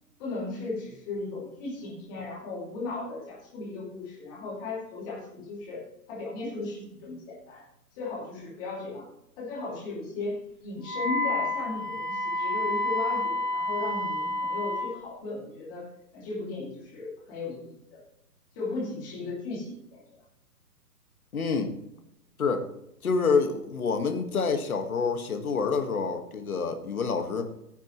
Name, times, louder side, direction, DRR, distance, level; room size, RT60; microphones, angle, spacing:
voice 1, 0.2-5.8 6.1-7.6 8.0-9.0 9.4-10.4 10.6-15.8 16.1-18.0 18.5-20.2, left 3 dB, 15° left, -6 dB, 2.8 m, -36 dB
Wind instrument woodwind instrument, 10.8-14.9, left 2 dB, 30° right, 1.0 m, -29 dB
voice 2, 21.3-21.7 22.4-22.6 23.0-27.5, left 5 dB, 60° left, 6 dB, 1.9 m, -27 dB
14.5 x 9.4 x 3.2 m, 0.81 s
hypercardioid pair, 175°, 48 cm